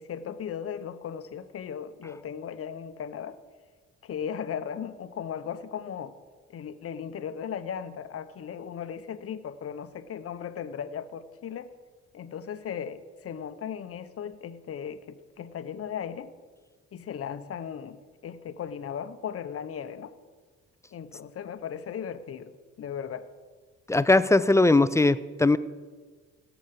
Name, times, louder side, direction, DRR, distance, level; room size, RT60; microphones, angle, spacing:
voice 1, 0.0-3.4 4.0-6.1 6.5-11.7 12.1-16.3 16.9-20.1 20.9-22.5 22.8-23.3, left 8 dB, 50° left, 11 dB, 0.8 m, -37 dB
voice 2, 23.9-25.6, left 2 dB, 10° left, 15 dB, 0.4 m, -20 dB
16.0 x 7.0 x 6.6 m, 1.5 s
cardioid pair, 90°, 30 cm